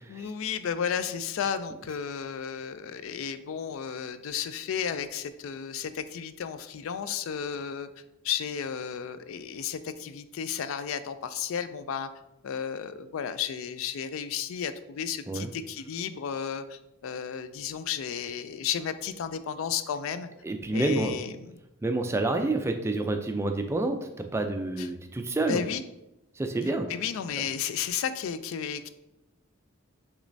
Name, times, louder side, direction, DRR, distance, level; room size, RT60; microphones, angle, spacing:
voice 1, 0.1-7.9 8.2-12.1 12.4-20.3 20.7-21.6 24.8-24.9 25.5-25.8 26.9-28.9, left 7 dB, 70° left, 11 dB, 0.3 m, -33 dB
voice 2, 20.4-21.2 21.8-25.6 26.4-26.9, right 2 dB, 10° right, 6 dB, 0.3 m, -28 dB
6.3 x 3.1 x 2.6 m, 0.94 s
head